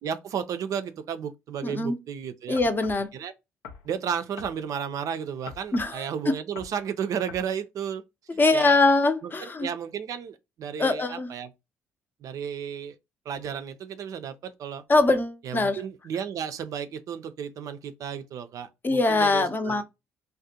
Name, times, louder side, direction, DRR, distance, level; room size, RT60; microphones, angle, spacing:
voice 1, 0.0-2.6 3.1-3.3 3.8-8.0 8.5-8.8 9.2-11.5 12.2-13.0 13.3-14.8 15.4-19.8, right 8 dB, 55° right, 0.4 m, -33 dB
voice 2, 1.6-2.0 2.5-3.1 5.7-6.3 8.4-9.7 10.8-11.3 14.9-15.8 18.8-19.8, left 3 dB, 30° left, 0.6 m, -23 dB
sound 1, 2.6-3.1 3.6-3.9 4.4-4.6 5.5-6.0 6.6-6.8 7.3-7.5, left 6 dB, 75° left, 0.4 m, -43 dB
2.4 x 2.1 x 2.7 m
hypercardioid pair, 45°, 7 cm